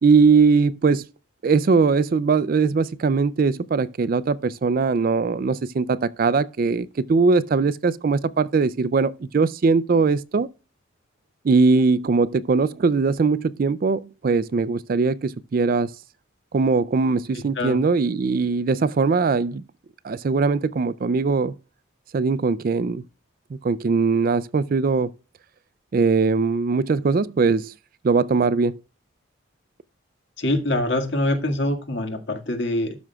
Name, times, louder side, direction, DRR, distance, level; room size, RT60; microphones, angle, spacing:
voice 1, 0.0-1.1 1.4-10.5 11.4-15.9 16.5-19.6 20.0-21.5 22.1-23.0 23.6-25.1 25.9-27.7 28.0-28.8, right 4 dB, 45° right, 0.4 m, -20 dB
voice 2, 17.3-17.8 30.4-33.0, left 1 dB, 60° left, 1.9 m, -24 dB
12.5 x 6.1 x 2.3 m
head